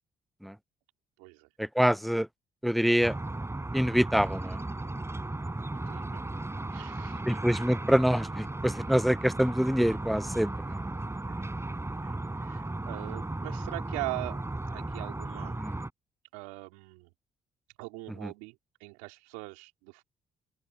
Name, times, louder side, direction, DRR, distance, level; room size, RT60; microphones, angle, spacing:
voice 1, 1.2-1.5 1.8-2.1 5.7-6.3 6.7-7.4 11.3-11.5 12.0-15.6 16.3-17.1 17.8-20.0, right 27 dB, 85° right, 3.5 m, -42 dB
voice 2, 1.8-2.3 2.6-3.1 3.7-4.6 7.3-10.8 15.6-15.7, equal, ahead, 0.3 m, -25 dB
sound 1, 3.0-15.9, right 2 dB, 15° right, 4.5 m, -36 dB
open air
hypercardioid pair, 50°, 16 cm